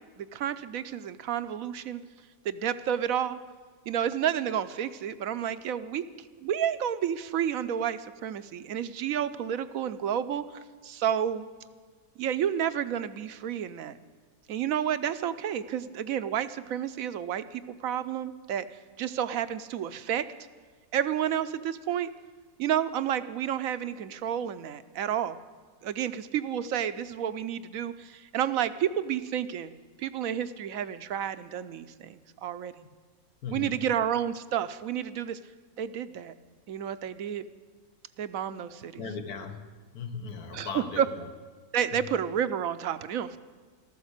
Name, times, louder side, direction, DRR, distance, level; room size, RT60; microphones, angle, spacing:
voice 1, 0.0-2.0 2.4-3.4 3.9-11.5 12.2-14.0 14.5-20.2 20.9-22.1 22.6-25.4 25.8-29.7 30.0-32.7 33.5-35.4 35.8-36.3 36.7-37.5 38.2-39.0 40.5-41.1 41.7-43.4, right 9 dB, 70° right, 13 dB, 1.0 m, -30 dB
voice 2, 33.4-33.8 39.0-39.6 39.9-41.2 41.9-42.0, left 5 dB, 75° left, 7 dB, 1.8 m, -37 dB
13.5 x 13.0 x 8.1 m, 1.5 s
omnidirectional pair, 1.6 m